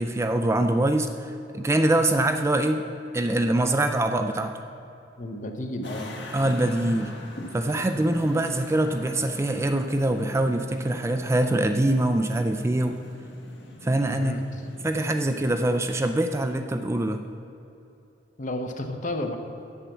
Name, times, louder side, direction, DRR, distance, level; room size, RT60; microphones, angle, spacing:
voice 1, 0.0-2.9 3.1-4.5 6.3-7.1 7.5-13.0 13.8-14.4 14.8-17.2, right 1 dB, 15° right, 7 dB, 0.3 m, -24 dB
voice 2, 5.2-6.1 14.1-14.4 18.4-19.4, left 1 dB, 45° left, 5 dB, 0.9 m, -31 dB
sound 1, 5.8-15.6, left 1 dB, 65° left, 1.6 m, -42 dB
8.3 x 7.3 x 7.1 m, 2.9 s
head